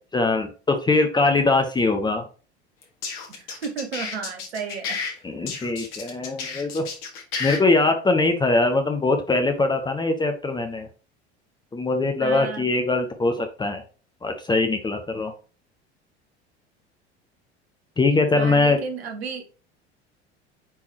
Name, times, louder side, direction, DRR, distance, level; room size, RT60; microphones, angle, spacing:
voice 1, 0.1-2.2 5.2-6.9 7.4-10.9 11.7-13.8 14.2-15.3 18.0-18.8, left 3 dB, 15° left, 0.8 m, -22 dB
sound 1, 2.8-5.1 5.5-7.6, left 5 dB, 55° left, 1.7 m, -31 dB
voice 2, 3.3-5.0 12.2-12.7 18.3-19.4, right 5 dB, 65° right, 1.1 m, -33 dB
8.8 x 3.7 x 3.0 m
figure-of-eight pair, 70°, 33 cm